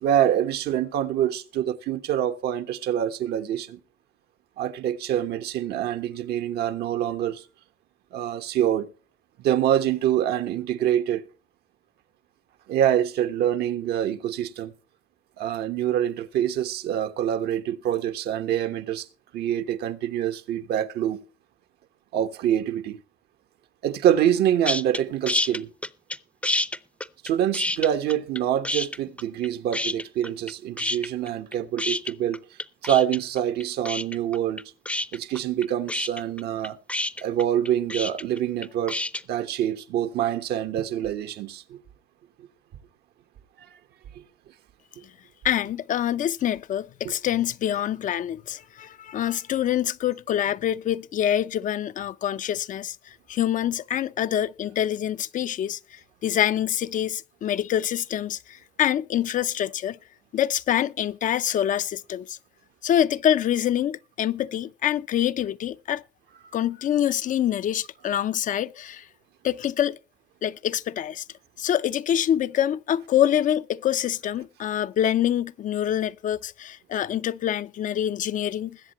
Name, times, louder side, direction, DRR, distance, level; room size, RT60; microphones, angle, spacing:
voice 1, 0.0-3.8 4.6-7.4 8.1-8.9 9.4-11.2 12.7-14.7 15.4-19.1 19.3-21.2 22.1-23.0 23.8-25.7 27.2-32.4 32.8-34.6 35.1-36.8 37.2-39.0 39.3-41.8, right 10 dB, 75° right, 1.2 m, -25 dB
sound 1, 24.6-25.0 25.3-26.2 26.4-28.4 28.6-29.5 29.7-30.5 30.8-39.2, left 2 dB, 5° left, 0.6 m, -28 dB
voice 2, 45.4-60.0 60.3-62.4 62.8-66.0 66.5-69.1 69.4-70.0 70.4-71.2 71.6-78.8, left 10 dB, 50° left, 0.5 m, -25 dB
21.0 x 8.0 x 3.0 m
cardioid pair, 110°, 17 cm